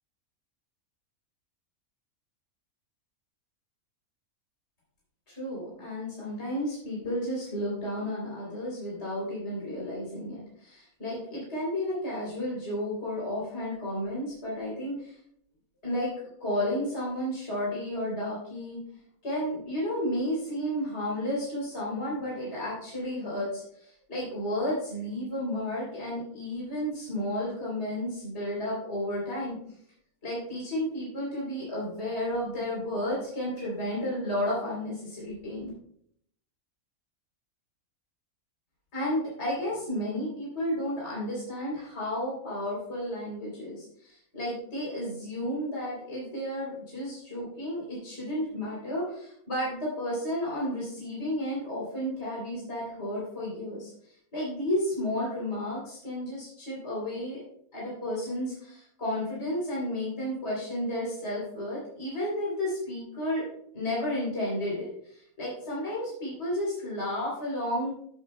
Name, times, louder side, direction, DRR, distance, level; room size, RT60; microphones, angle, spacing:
voice 1, 5.3-15.2 15.8-16.1 16.4-18.8 19.2-29.6 30.2-35.7 38.9-57.4 57.7-63.5 63.7-67.9, left 1 dB, 45° left, -6 dB, 3.7 m, -32 dB
14.0 x 7.6 x 2.2 m, 0.68 s
omnidirectional pair, 1.5 m